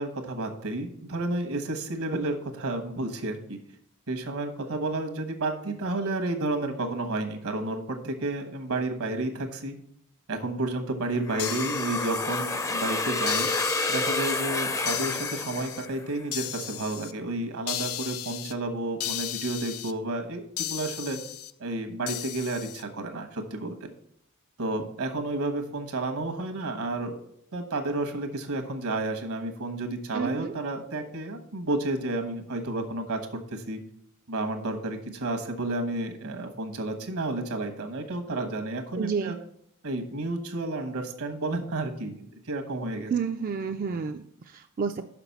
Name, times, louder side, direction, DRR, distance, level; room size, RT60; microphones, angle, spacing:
voice 1, 0.0-3.6 4.1-9.7 10.3-13.5 13.9-21.2 21.6-23.9 24.6-27.2 27.5-33.2 33.5-33.8 34.3-39.4 39.8-43.1, right 2 dB, 75° right, 5 dB, 1.3 m, -31 dB
sound 1, 11.3-16.2, left 3 dB, 15° left, 0.5 m, -29 dB
sound 2, 11.4-12.7 13.3-14.4 14.9-15.9 16.3-17.1 17.7-18.5 19.0-19.9 20.6-21.5 22.1-22.8, left 12 dB, 75° left, 0.5 m, -35 dB
voice 2, 30.1-30.5 39.0-39.3 43.1-45.1, right 6 dB, 40° right, 6 dB, 0.4 m, -30 dB
5.9 x 5.9 x 7.0 m, 0.70 s
head